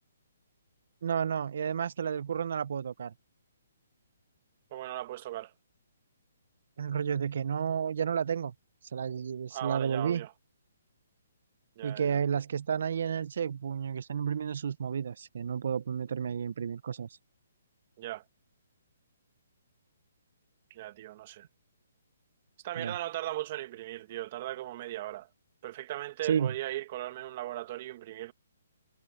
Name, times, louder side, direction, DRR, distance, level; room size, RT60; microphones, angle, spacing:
voice 1, 1.0-3.1 6.8-8.5 8.9-10.2 11.8-17.1 22.8-22.9 26.3-26.5, right 7 dB, 55° right, 0.6 m, -31 dB
voice 2, 4.7-5.5 9.5-10.3 11.8-12.2 18.0-18.2 20.7-21.5 22.6-25.3 25.6-28.3, right 15 dB, 30° right, 1.4 m, -38 dB
hypercardioid pair, 165°, 0 cm